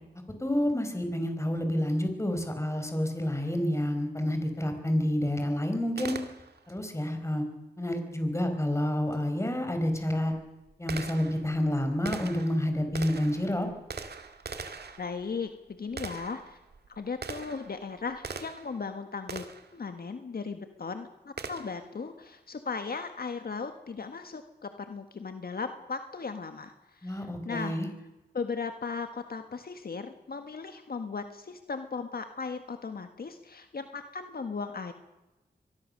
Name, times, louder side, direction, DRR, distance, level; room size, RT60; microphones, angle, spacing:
voice 1, 0.4-6.2 6.7-7.4 7.8-10.3 10.8-13.7 27.0-27.9, left 1 dB, 15° left, 6 dB, 5.1 m, -29 dB
Gunshot gunfire, 6.0-6.8 9.1-9.2 9.9-18.8 19.3-19.8 21.4-21.9, right 4 dB, 70° right, 2.1 m, -42 dB
voice 2, 15.0-16.6 16.9-19.4 19.7-27.8 28.3-34.9, left 5 dB, 60° left, 7 dB, 1.7 m, -37 dB
24.0 x 20.0 x 6.8 m, 1.0 s
wide cardioid pair, 80°, 17 cm